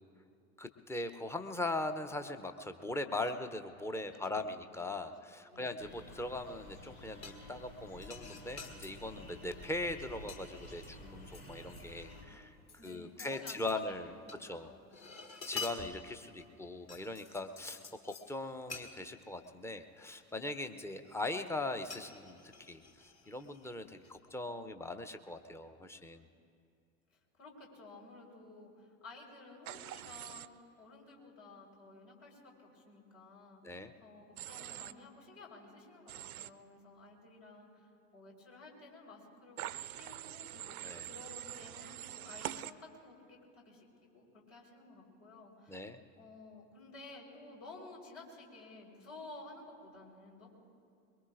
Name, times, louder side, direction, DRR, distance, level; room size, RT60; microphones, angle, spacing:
voice 1, 0.6-12.6 12.8-14.1 14.4-14.7 15.5-26.2 33.6-33.9 40.8-41.0 45.7-46.0, left 2 dB, 5° left, 8 dB, 0.6 m, -40 dB
voice 2, 4.3-4.6 5.3-5.7 12.8-14.0 14.3-14.9 27.1-30.5 30.8-40.8 41.0-45.9 46.2-50.5, left 3 dB, 60° left, -2 dB, 4.4 m, -54 dB
sound 1, 5.8-12.2, left 1 dB, 80° left, 3.7 m, -52 dB
sound 2, 7.2-7.7 8.0-8.9 9.5-9.7 10.0-11.9 12.2-12.3 12.7-14.4 14.7-16.5 16.9-18.3 18.7-18.9 19.4-19.5 20.1-20.7 21.9-23.7 24.0-24.2, left 4 dB, 35° left, 1.9 m, -48 dB
Human voice / Train, 29.7-30.5 34.4-34.9 36.1-36.5 39.6-42.7, right 13 dB, 75° right, 0.5 m, -44 dB
23.0 x 22.5 x 2.5 m, 2.5 s
figure-of-eight pair, 80°, 44 cm